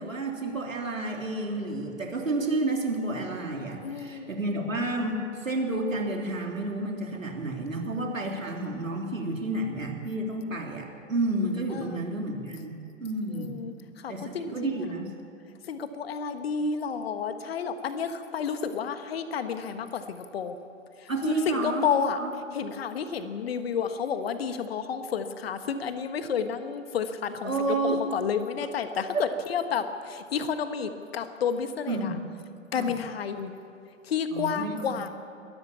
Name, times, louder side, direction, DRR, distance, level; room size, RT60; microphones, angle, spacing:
voice 1, 0.0-13.5 14.1-15.1 21.1-21.9 22.2-22.3 27.4-28.0 29.1-29.2 31.9-32.2 32.8-32.9 34.3-35.1, right 2 dB, 80° right, 1 dB, 3.4 m, -30 dB
voice 2, 3.8-4.3 11.7-12.0 13.3-14.8 15.6-20.6 21.0-22.2 22.5-32.1 32.7-33.5 34.0-35.1, left 6 dB, 50° left, 9 dB, 1.5 m, -31 dB
21.5 x 14.0 x 8.6 m, 2.6 s
figure-of-eight pair, 115°, 39 cm